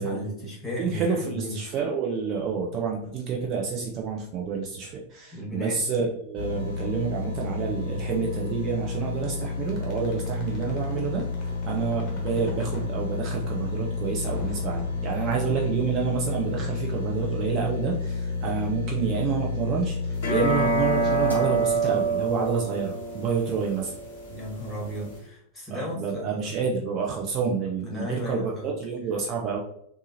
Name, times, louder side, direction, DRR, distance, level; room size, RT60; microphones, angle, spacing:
voice 1, 0.0-1.6 5.3-5.8 24.3-26.6 27.8-28.7, left 1 dB, 10° left, -5 dB, 1.4 m, -35 dB
voice 2, 0.8-23.9 25.7-29.6, right 6 dB, 35° right, -1 dB, 0.5 m, -29 dB
sound 1, 6.4-23.6 24.0-24.1, left 4 dB, 80° right, 1.0 m, -31 dB
sound 2, 9.7-12.9 14.2-15.6, left 2 dB, 30° left, 1.2 m, -42 dB
sound 3, 20.2-25.2, right 3 dB, 45° left, 0.9 m, -27 dB
3.6 x 2.8 x 2.6 m, 0.72 s
figure-of-eight pair, 90°, 0 cm